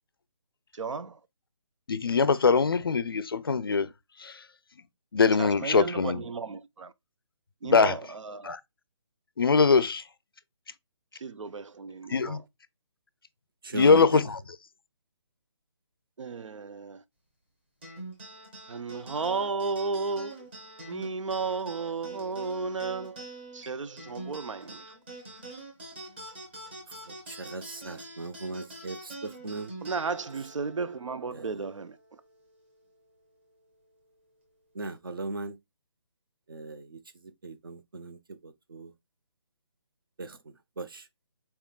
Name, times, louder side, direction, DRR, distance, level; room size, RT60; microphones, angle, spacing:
voice 1, 0.8-1.1 5.4-6.9 7.6-8.0 8.3-8.5 11.2-12.4 16.2-17.0 18.7-20.3 20.9-23.2 23.5-24.8 29.8-31.9, right 4 dB, 85° right, 0.7 m, -33 dB
voice 2, 1.9-3.9 4.2-4.4 5.1-6.3 7.6-8.1 8.4-8.6 9.4-10.0 12.1-12.4 13.7-14.4, left 5 dB, 50° left, 0.4 m, -23 dB
voice 3, 13.6-14.2 27.1-29.7 31.3-31.7 34.7-35.6 36.5-37.0 37.4-38.9 40.2-40.4 40.8-41.0, right 3 dB, 45° right, 0.7 m, -38 dB
sound 1, 17.8-32.6, right 2 dB, 20° right, 1.2 m, -45 dB
4.4 x 3.6 x 2.2 m
hypercardioid pair, 175°, 16 cm